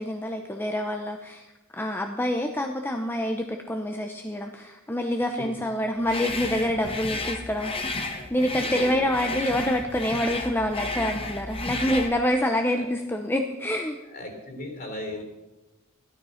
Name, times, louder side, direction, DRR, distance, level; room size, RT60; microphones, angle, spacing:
voice 1, 0.0-1.5 1.7-14.0, left 1 dB, 10° left, 4 dB, 0.8 m, -27 dB
sound 1, 6.0-12.2, left 3 dB, 25° left, 1.3 m, -32 dB
voice 2, 8.6-9.2 12.7-12.9 14.0-15.2, left 1 dB, 45° left, 3 dB, 3.8 m, -37 dB
14.0 x 12.0 x 5.8 m, 1.0 s
head